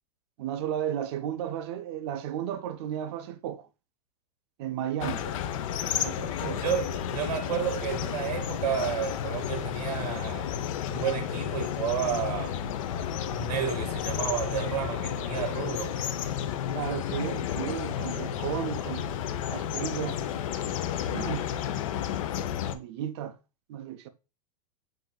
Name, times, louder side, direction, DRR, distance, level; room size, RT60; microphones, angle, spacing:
voice 1, 0.4-3.7 4.6-5.2 6.0-6.6 16.7-19.0 19.5-20.2 21.1-21.5 22.7-23.4 23.7-24.1, right 10 dB, 40° right, 0.4 m, -34 dB
sound 1, 5.0-22.7, left 9 dB, 55° left, 0.5 m, -32 dB
voice 2, 6.6-10.5 10.9-12.6 13.3-16.0, right 9 dB, 85° right, 0.9 m, -31 dB
7.8 x 2.6 x 2.2 m
supercardioid pair, 160°, 21 cm